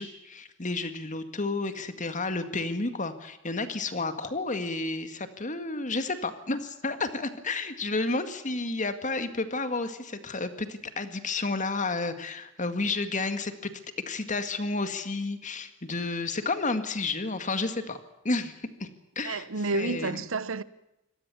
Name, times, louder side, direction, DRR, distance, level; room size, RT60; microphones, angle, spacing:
voice 1, 0.0-13.7 14.1-18.0 18.2-18.5 18.8-18.9 19.2-19.5 19.7-20.2, left 3 dB, 40° left, 2.0 m, -31 dB
voice 2, 19.2-20.6, right 3 dB, 70° right, 1.0 m, -30 dB
25.0 x 18.0 x 7.0 m
head